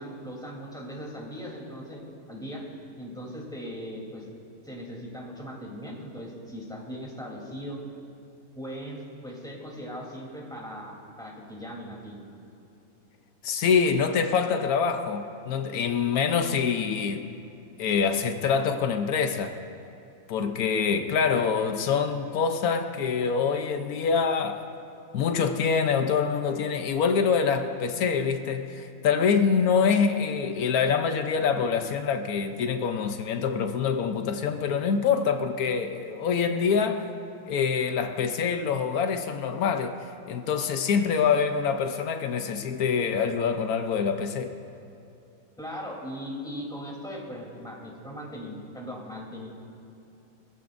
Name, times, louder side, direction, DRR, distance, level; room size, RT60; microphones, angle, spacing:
voice 1, 0.0-2.0 2.3-2.6 3.0-4.3 4.6-7.8 8.5-12.1 45.6-49.5, equal, 5° left, 3.1 m, -39 dB
voice 2, 13.4-17.3 17.8-19.6 20.3-24.7 25.1-37.1 37.5-39.9 40.3-44.5, left 6 dB, 85° left, 1.2 m, -25 dB
24.0 x 15.0 x 2.6 m
omnidirectional pair, 1.5 m